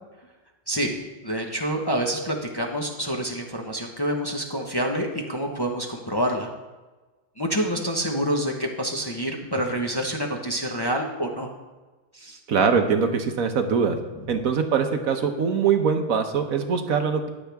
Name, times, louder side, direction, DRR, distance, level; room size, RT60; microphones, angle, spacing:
voice 1, 0.7-6.5 7.4-11.5 12.1-12.4, equal, 20° left, 1 dB, 1.0 m, -27 dB
voice 2, 12.5-14.0 14.3-17.3, right 6 dB, 65° right, 6 dB, 1.3 m, -22 dB
14.5 x 10.0 x 3.5 m, 1.2 s
omnidirectional pair, 1.6 m